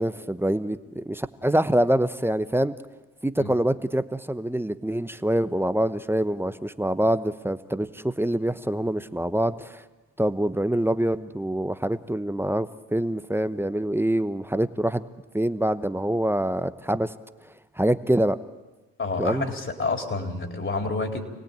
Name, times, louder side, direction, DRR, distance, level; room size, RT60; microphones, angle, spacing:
voice 1, 0.0-2.7 3.2-9.8 10.2-15.0 15.3-17.1 17.8-18.4 19.2-19.4, right 1 dB, 5° right, 12 dB, 0.9 m, -25 dB
voice 2, 19.0-21.3, left 3 dB, 35° left, 4 dB, 4.1 m, -29 dB
27.5 x 18.0 x 8.8 m, 1.2 s
supercardioid pair, 65°, 36 cm